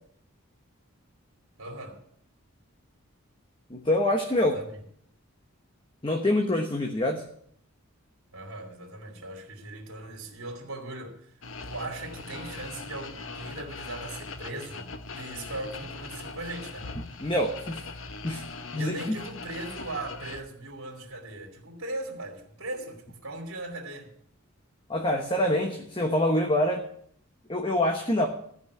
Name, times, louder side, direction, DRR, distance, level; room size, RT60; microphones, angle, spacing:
voice 1, 1.6-2.0 4.4-4.8 8.3-11.3 11.6-16.9 18.7-24.1, right 2 dB, 70° right, 2.4 m, -39 dB
voice 2, 3.7-4.5 6.0-7.2 17.2-17.8 18.2-18.4 18.7-19.2 24.9-26.8 27.5-28.3, left 1 dB, 25° left, 1.0 m, -25 dB
sound 1, 11.4-20.4, left 3 dB, 65° left, 0.9 m, -40 dB
14.5 x 5.5 x 9.5 m
head